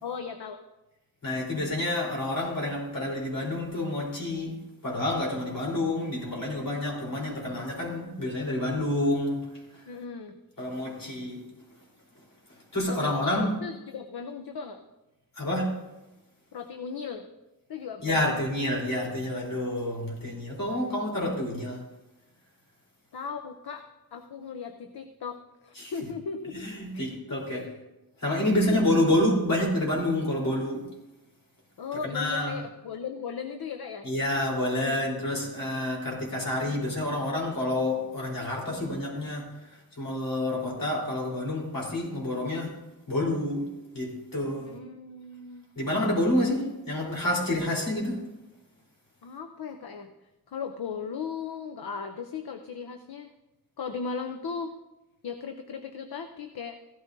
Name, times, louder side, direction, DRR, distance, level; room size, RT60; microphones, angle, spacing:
voice 1, 0.0-0.6 9.9-10.3 12.9-14.8 16.5-17.3 17.7-18.4 20.7-21.0 23.1-27.1 27.5-27.7 28.6-28.8 29.1-29.2 31.8-34.1 34.8-35.1 44.6-45.7 49.2-50.1 50.5-53.3 53.8-54.7 55.2-56.8, left 6 dB, 80° left, 6 dB, 0.7 m, -37 dB
voice 2, 1.2-9.5 10.6-11.4 12.7-13.6 15.4-15.8 18.0-21.8 25.8-25.9 26.5-27.6 28.2-30.9 32.0-32.5 34.0-39.6 40.0-42.8 43.1-43.7 43.9-44.7 45.8-48.2, left 1 dB, 60° left, -3 dB, 3.9 m, -28 dB
15.5 x 12.5 x 2.7 m, 1.0 s
wide cardioid pair, 85°, 38 cm